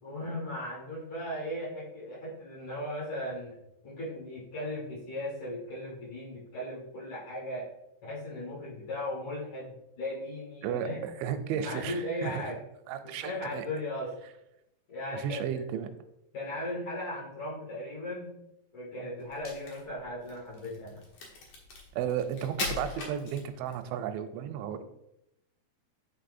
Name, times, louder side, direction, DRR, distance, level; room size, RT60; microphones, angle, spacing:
voice 1, 0.0-3.6 3.8-7.7 8.0-11.0 11.5-12.6 13.0-14.1 14.9-15.7 16.3-18.4 18.7-21.0, left 1 dB, 50° left, -8 dB, 2.5 m, -37 dB
voice 2, 10.6-12.5 12.9-13.7 15.1-15.9 22.0-24.8, right 9 dB, 85° right, 8 dB, 2.7 m, -34 dB
Crack, 19.2-23.9, left 3 dB, 85° left, 1.6 m, -40 dB
9.0 x 4.4 x 2.6 m, 0.83 s
omnidirectional pair, 5.3 m